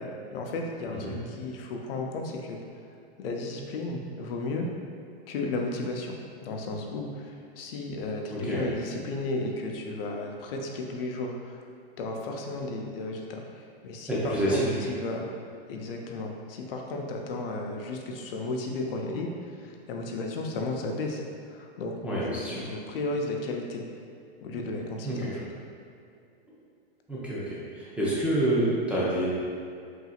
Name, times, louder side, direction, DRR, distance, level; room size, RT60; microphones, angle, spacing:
voice 1, 0.0-2.6 3.2-4.7 5.3-11.6 12.0-13.4 13.8-15.3 15.7-19.3 19.6-21.2 21.5-23.8 24.4-25.4, left 2 dB, 65° left, 1 dB, 0.7 m, -34 dB
voice 2, 8.3-8.6 14.1-14.8 22.0-22.7 25.0-25.4 27.1-29.3, right 1 dB, 5° right, -9 dB, 0.4 m, -28 dB
5.7 x 2.7 x 2.4 m, 2.4 s
hypercardioid pair, 135°, 31 cm